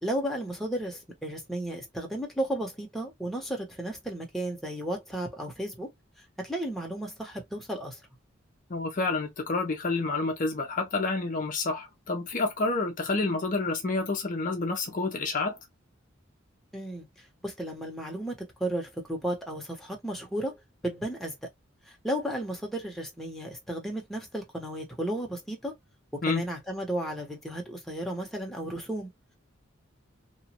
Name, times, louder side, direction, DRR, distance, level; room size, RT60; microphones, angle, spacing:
voice 1, 0.0-5.9 6.4-8.0 16.7-17.1 17.4-21.5 21.9-25.7 26.1-29.1, right 1 dB, ahead, 0.9 m, -34 dB
voice 2, 8.7-15.6 26.2-26.4, left 3 dB, 40° left, 0.6 m, -29 dB
3.0 x 2.2 x 2.8 m
head